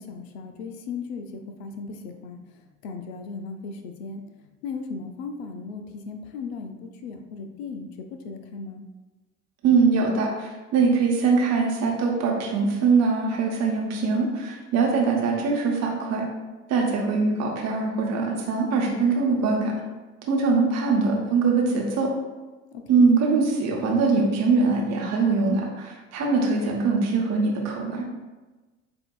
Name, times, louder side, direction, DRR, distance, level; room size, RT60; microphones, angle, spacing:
voice 1, 0.0-2.4 2.8-4.2 4.6-8.9 22.7-23.1, left 4 dB, 55° left, 6 dB, 0.5 m, -36 dB
voice 2, 9.6-16.3 16.7-19.7 20.3-22.1 22.9-28.0, right 4 dB, 45° right, 0 dB, 1.0 m, -22 dB
7.7 x 2.6 x 2.3 m, 1.2 s
figure-of-eight pair, 60°, 38 cm